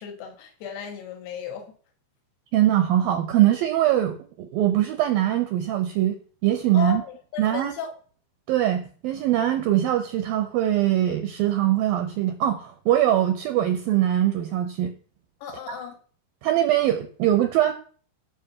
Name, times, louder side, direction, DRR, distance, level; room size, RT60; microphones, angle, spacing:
voice 1, 0.0-1.7 6.7-7.9 15.4-16.0, left 7 dB, 65° left, 3.9 m, -35 dB
voice 2, 2.5-7.0 7.4-7.7 8.5-14.9 15.7-15.8 16.4-17.7, right 12 dB, 75° right, 2.2 m, -22 dB
15.5 x 6.6 x 5.9 m
omnidirectional pair, 5.2 m